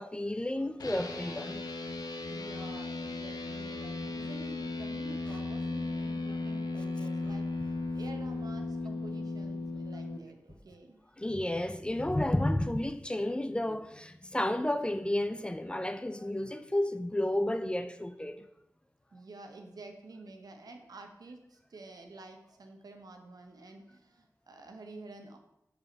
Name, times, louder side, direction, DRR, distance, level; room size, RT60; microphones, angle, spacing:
voice 1, 0.0-1.6 11.2-18.4, left 1 dB, 15° left, 0.4 m, -31 dB
sound 1, 0.8-10.2, left 2 dB, 80° left, 0.7 m, -36 dB
voice 2, 2.3-7.5 7.9-11.0 19.1-25.4, right 2 dB, 80° right, 0.9 m, -49 dB
5.0 x 4.8 x 5.7 m
wide cardioid pair, 75°, 6 cm